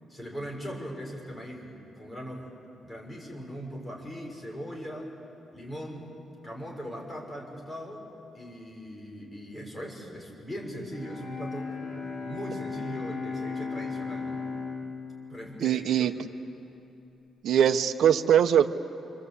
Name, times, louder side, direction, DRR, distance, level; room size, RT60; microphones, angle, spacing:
voice 1, 0.1-2.5 2.8-5.1 5.5-6.2 6.4-8.1 8.3-11.7 12.2-14.4 15.3-16.1, equal, 10° left, -1 dB, 6.0 m, -39 dB
Bowed string instrument, 10.8-16.9, left 4 dB, 50° left, 7.1 m, -37 dB
voice 2, 15.6-16.1 17.4-18.7, right 9 dB, 65° right, 9 dB, 1.1 m, -21 dB
27.5 x 25.5 x 8.5 m, 2.8 s
cardioid pair, 125°, 0 cm